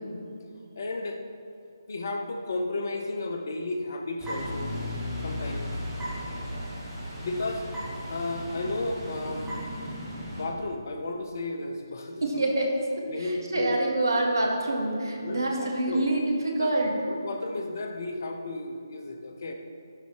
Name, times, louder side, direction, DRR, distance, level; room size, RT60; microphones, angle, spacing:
voice 1, 0.8-1.2 1.9-4.8 5.2-5.8 7.2-7.7 8.1-9.5 10.3-12.4 13.0-13.8 15.2-16.2 16.6-16.7 17.0-19.5, left 2 dB, 50° left, 4 dB, 0.8 m, -33 dB
sound 1, 4.2-10.4, equal, 5° right, 1.7 m, -35 dB
voice 2, 12.2-17.0, right 1 dB, 70° right, 0 dB, 1.6 m, -26 dB
11.0 x 4.1 x 4.7 m, 2.5 s
figure-of-eight pair, 150°, 2 cm